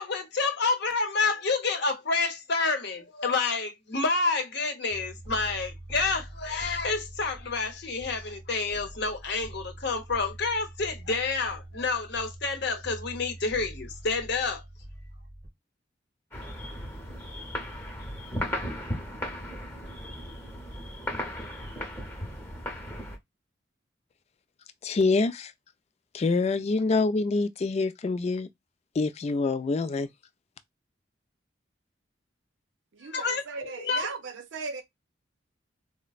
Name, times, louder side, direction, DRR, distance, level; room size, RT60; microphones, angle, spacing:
voice 1, 0.0-14.6 33.1-34.1, left 4 dB, 60° left, 0.8 m, -29 dB
sound 1, 4.9-15.5, right 1 dB, 15° right, 0.7 m, -44 dB
sound 2, 16.3-23.2, equal, 15° left, 0.8 m, -36 dB
voice 2, 24.8-25.5 26.1-28.5 28.9-30.1, left 3 dB, 35° left, 0.3 m, -26 dB
voice 3, 32.9-34.8, right 4 dB, 75° right, 0.5 m, -37 dB
4.1 x 2.0 x 2.3 m
head